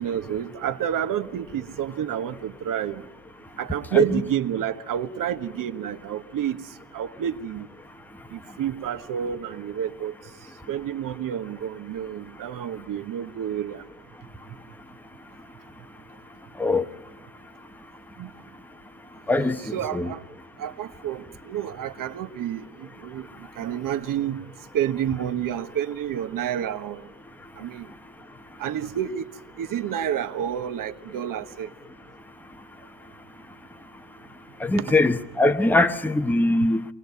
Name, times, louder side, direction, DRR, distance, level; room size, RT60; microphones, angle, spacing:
voice 1, 0.0-3.0 3.6-6.6 6.9-7.7 8.3-10.1 10.7-13.8 18.2-18.3 19.6-20.2 20.6-23.3 23.6-24.4 24.7-27.0 27.6-27.9 28.6-29.2 29.6-31.7 34.7-34.8, right 10 dB, 40° right, 1.3 m, -29 dB
voice 2, 19.3-20.1 34.6-36.9, left 2 dB, 5° left, 1.0 m, -22 dB
23.5 x 18.0 x 9.5 m
supercardioid pair, 95°, 50 cm